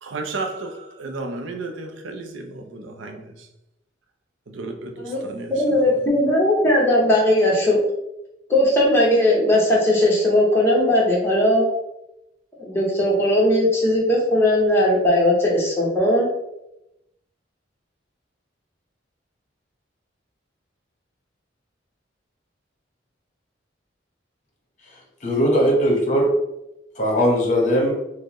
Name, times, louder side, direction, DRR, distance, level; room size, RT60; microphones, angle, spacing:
voice 1, 0.0-3.5 4.5-6.1, right 3 dB, 85° right, 0.5 m, -33 dB
voice 2, 5.5-7.8 8.5-11.6 12.6-16.3, left 1 dB, 15° left, 0.8 m, -18 dB
voice 3, 24.8-26.3 27.0-27.9, equal, 40° left, 0.9 m, -20 dB
4.3 x 2.0 x 2.9 m
head